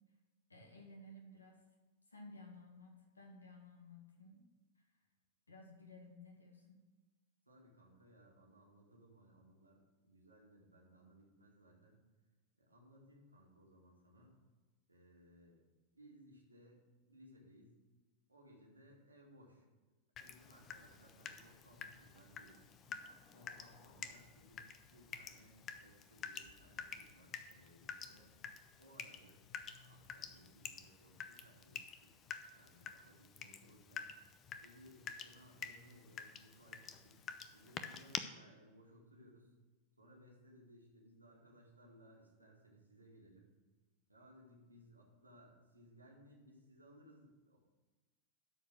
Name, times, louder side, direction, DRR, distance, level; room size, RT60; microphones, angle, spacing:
voice 1, 0.5-1.6 2.1-4.5 4.8-4.9 5.5-6.8, left 2 dB, 80° left, 2 dB, 1.6 m, -56 dB
voice 2, 7.5-12.0 12.6-14.4 14.9-15.6 15.9-17.8 18.3-19.7 20.2-22.7 23.3-28.3 28.8-29.4 29.8-32.2 32.5-34.1 34.6-37.2 37.5-39.5 40.0-43.5 44.1-47.6, equal, 85° right, -2 dB, 2.3 m, -63 dB
Water tap faucet / Drip, 20.2-38.2, left 7 dB, 30° left, 0.6 m, -50 dB
12.5 x 4.7 x 6.3 m, 1.2 s
figure-of-eight pair, 90°, 0 cm